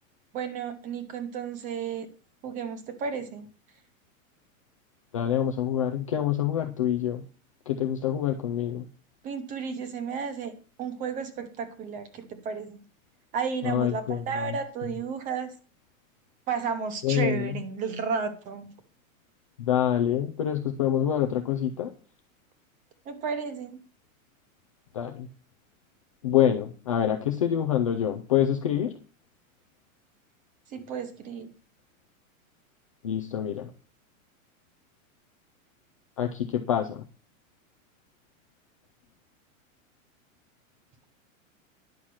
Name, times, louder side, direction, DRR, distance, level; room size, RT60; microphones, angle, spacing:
voice 1, 0.3-2.1 2.4-3.5 9.2-10.5 10.8-12.8 13.3-15.5 16.5-18.7 23.1-23.8 30.7-31.5, right 6 dB, 20° right, 10 dB, 0.9 m, -33 dB
voice 2, 5.1-7.2 7.7-8.8 13.6-14.6 17.0-17.6 19.6-21.9 24.9-25.3 26.2-28.9 33.0-33.7 36.2-37.0, left 10 dB, 25° left, 3 dB, 0.4 m, -26 dB
10.5 x 5.7 x 6.2 m, 0.38 s
supercardioid pair, 170°, 42 cm